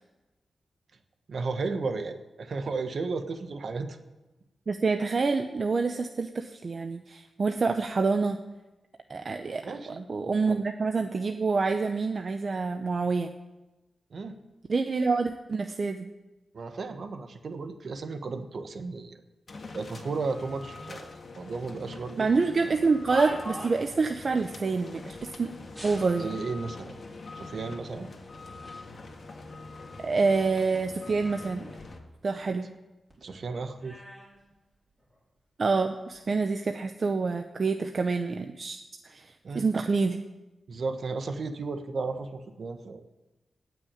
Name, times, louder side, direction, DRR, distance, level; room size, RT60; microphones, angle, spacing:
voice 1, 1.3-4.0 9.6-10.0 10.4-10.6 14.1-14.4 16.5-19.2 19.7-22.3 26.2-26.9 27.3-28.1 33.2-34.0 39.4-39.7 40.7-43.1, right 4 dB, 65° right, 7 dB, 1.4 m, -34 dB
voice 2, 4.7-8.4 9.1-13.3 14.7-16.1 22.2-25.5 25.8-26.3 30.0-31.7 32.2-32.7 35.6-38.8 39.0-39.3 39.5-40.2, right 4 dB, 50° right, 6 dB, 0.8 m, -27 dB
sound 1, 19.5-32.0, left 3 dB, 55° left, 1.9 m, -44 dB
sound 2, 22.7-24.0 25.7-26.6 27.4-27.5 28.2-28.9 29.3-30.8 31.2-32.8 33.1-35.2 36.0-36.3, right 1 dB, 15° right, 5.0 m, -42 dB
18.0 x 6.2 x 8.9 m, 1.1 s
cardioid pair, 85°, 0 cm